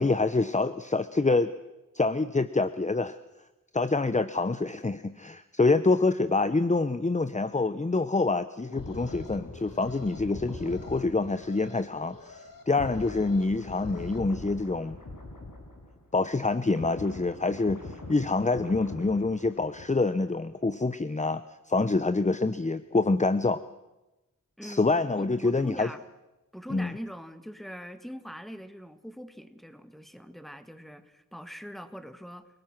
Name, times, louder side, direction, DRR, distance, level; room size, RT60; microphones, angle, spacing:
voice 1, 0.0-1.5 1.9-3.2 3.7-12.4 12.7-15.0 16.1-23.6 24.6-25.9 26.7-26.9, left 3 dB, 20° left, 13 dB, 0.8 m, -26 dB
Alarm, 8.5-14.2, left 4 dB, 90° left, 2.5 m, -50 dB
sound 1, 8.7-16.2 16.5-20.2 20.5-20.7, left 2 dB, 70° left, 5.9 m, -43 dB
voice 2, 24.6-26.0 26.5-32.5, equal, ahead, 10 dB, 1.9 m, -42 dB
29.5 x 19.0 x 6.1 m, 1.0 s
wide cardioid pair, 60°, 32 cm